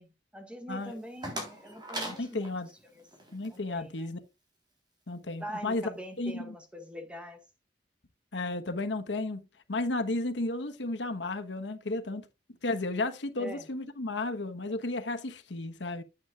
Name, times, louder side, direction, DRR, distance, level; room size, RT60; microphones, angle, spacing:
voice 1, 0.0-2.5 2.9-3.0 3.5-4.2 5.4-7.4 13.4-13.7, equal, 5° right, 1.8 m, -43 dB
sound 1, 0.8-3.6, right 1 dB, 25° right, 3.7 m, -41 dB
voice 2, 2.0-2.7 3.3-4.2 5.1-5.9 6.2-6.6 8.3-12.2 12.6-16.0, left 2 dB, 80° left, 1.2 m, -33 dB
9.2 x 9.2 x 2.4 m
head